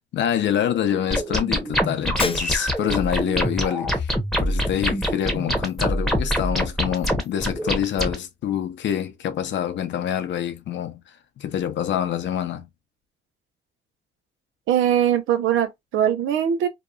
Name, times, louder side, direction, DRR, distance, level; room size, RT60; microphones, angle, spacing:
voice 1, 0.1-4.1 4.4-12.7, left 10 dB, 65° left, 0.7 m, -26 dB
sound 1, 1.1-8.1, equal, ahead, 0.9 m, -24 dB
Shatter, 2.2-3.0, left 5 dB, 30° left, 0.6 m, -31 dB
voice 2, 14.7-16.7, right 10 dB, 85° right, 0.7 m, -21 dB
2.9 x 2.3 x 2.3 m
cardioid pair, 90°, 20 cm